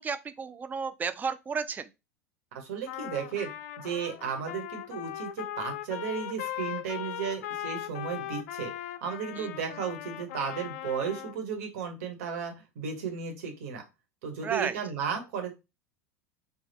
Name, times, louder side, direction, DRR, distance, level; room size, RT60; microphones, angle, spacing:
voice 1, 0.0-1.9 9.4-9.5 14.4-14.8, right 6 dB, 20° right, 0.4 m, -32 dB
voice 2, 2.5-3.5 3.8-8.7 9.0-13.8 14.2-15.5, right 7 dB, 65° right, 1.3 m, -34 dB
Trumpet, 2.9-11.4, left 12 dB, 60° left, 0.4 m, -39 dB
3.3 x 2.3 x 4.0 m
figure-of-eight pair, 75°, 8 cm